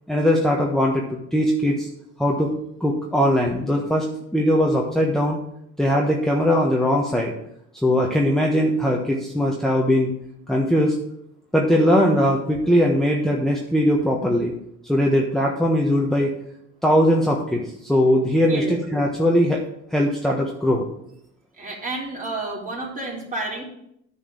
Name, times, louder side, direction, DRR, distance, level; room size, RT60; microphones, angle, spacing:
voice 1, 0.1-1.0 1.3-1.9 2.2-2.5 2.8-5.4 5.8-7.3 7.8-10.1 10.5-11.0 11.5-14.5 14.9-16.3 16.8-19.6 19.9-20.9, equal, ahead, -1 dB, 1.3 m, -20 dB
voice 2, 21.6-23.6, right 2 dB, 25° right, -3 dB, 3.8 m, -30 dB
9.6 x 4.8 x 7.2 m, 0.75 s
cardioid pair, 90°, 30 cm